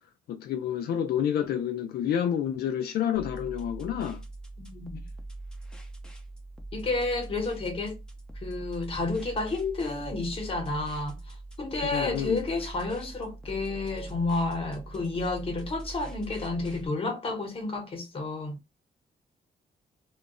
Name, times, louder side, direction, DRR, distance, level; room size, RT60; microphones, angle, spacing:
voice 1, 0.3-4.2 11.9-12.4, left 9 dB, 85° left, 0.4 m, -29 dB
sound 1, 3.1-16.9, right 2 dB, 5° left, 0.5 m, -42 dB
voice 2, 4.6-5.0 6.7-8.0 8.4-18.6, left 3 dB, 35° left, 0.9 m, -31 dB
2.2 x 2.0 x 3.5 m
cardioid pair, 130°, 16 cm